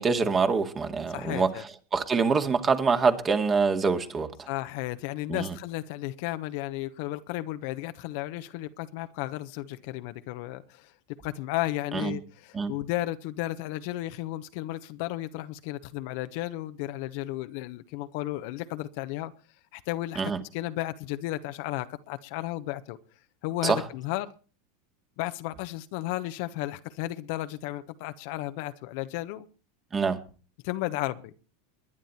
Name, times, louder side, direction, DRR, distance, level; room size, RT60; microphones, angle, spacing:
voice 1, 0.0-1.5 1.9-4.5 5.3-5.6 11.9-12.1 12.5-12.7 20.2-20.4 23.6-23.8 29.9-30.2, right 5 dB, 25° right, 2.2 m, -25 dB
voice 2, 1.1-1.6 4.5-10.9 11.2-19.3 19.7-20.2 20.5-23.0 23.4-24.3 25.2-29.5 30.6-31.3, left 16 dB, 60° left, 1.1 m, -33 dB
21.0 x 10.5 x 4.4 m
hypercardioid pair, 95°, 0 cm